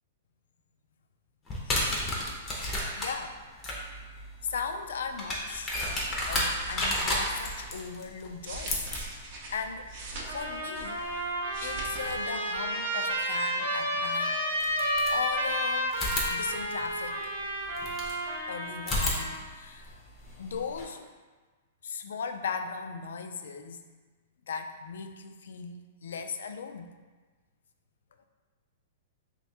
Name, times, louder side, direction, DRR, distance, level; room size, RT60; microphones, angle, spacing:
sound 1, 1.5-12.3 13.8-13.9 14.6-15.5 15.9-18.2 18.8-20.8, left 1 dB, 10° left, 0.5 m, -34 dB
voice 1, 1.7-2.0 2.9-3.4 4.5-5.8 6.3-8.8 9.5-9.9 10.3-11.3 11.6-14.4 15.1-16.0 16.3-17.2 18.5-20.0 20.4-21.1 21.8-23.8 24.5-26.9, left 6 dB, 80° left, 7 dB, 0.3 m, -38 dB
sound 2, 5.7-7.7 8.2-11.1 11.4-12.2 12.5-12.7, right 2 dB, 35° right, 0.5 m, -43 dB
Trumpet, 10.2-19.4, equal, 65° right, 0.8 m, -31 dB
3.2 x 2.2 x 4.2 m, 1.4 s
hypercardioid pair, 170°, 0 cm